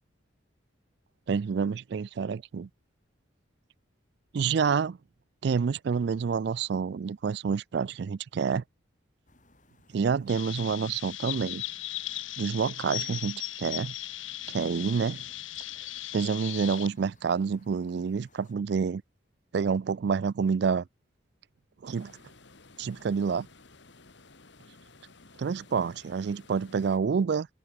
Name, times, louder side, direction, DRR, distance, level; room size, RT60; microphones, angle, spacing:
voice 1, 1.3-2.7 4.3-5.0 5.4-8.6 9.9-11.6 12.4-13.9 14.5-15.2 16.1-19.0 19.5-20.9 21.8-22.1 22.8-23.5 25.4-27.5, right 6 dB, 55° right, 0.3 m, -28 dB
sound 1, 9.3-18.5, left 2 dB, 40° left, 7.0 m, -61 dB
Chirp tweet, 10.3-16.9, left 14 dB, 80° left, 1.8 m, -37 dB
sound 2, 21.8-27.0, left 3 dB, 60° left, 2.0 m, -55 dB
head